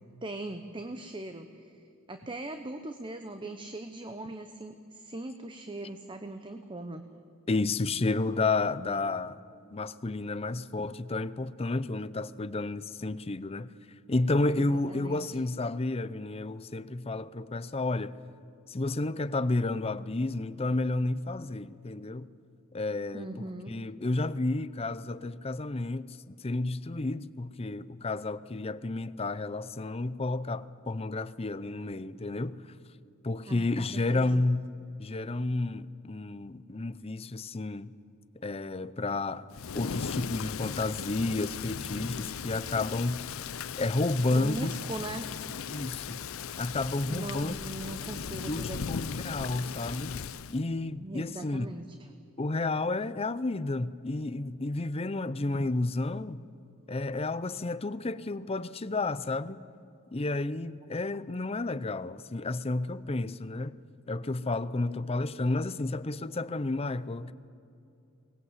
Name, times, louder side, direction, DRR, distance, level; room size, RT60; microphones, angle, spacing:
voice 1, 0.2-7.0 14.6-15.4 23.1-23.8 33.5-34.4 44.3-45.3 47.1-48.9 51.0-51.9, right 2 dB, 25° right, 0.9 m, -40 dB
voice 2, 7.5-9.4 9.7-13.7 14.1-18.2 18.7-22.3 22.7-32.6 33.2-34.7 35.0-37.9 38.4-39.5 39.7-43.3 43.8-44.7 45.7-46.2 46.6-47.5 48.5-50.2 50.5-51.7 52.4-56.4 56.9-59.6 60.1-63.8 64.1-67.3, left 2 dB, 30° left, 0.6 m, -31 dB
Thunder / Rain, 39.5-50.6, left 7 dB, 75° left, 0.6 m, -37 dB
23.5 x 19.5 x 8.1 m
head